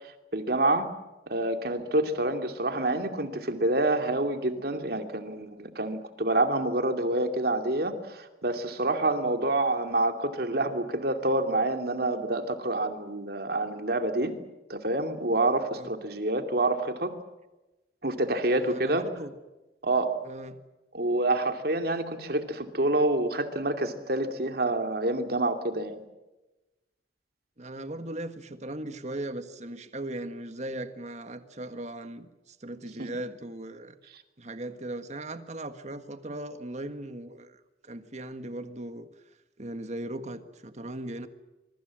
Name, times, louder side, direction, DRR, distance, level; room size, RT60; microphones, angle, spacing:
voice 1, 0.0-0.9 1.3-14.3 14.7-17.1 18.0-19.0 19.8-20.1 20.9-26.0 33.0-33.1, right 2 dB, 60° right, 6 dB, 2.6 m, -27 dB
voice 2, 18.5-19.3 20.2-20.6 27.6-34.0 34.4-39.1 39.6-41.3, right 1 dB, 40° right, 9 dB, 1.6 m, -38 dB
25.0 x 23.5 x 7.6 m, 1.0 s
head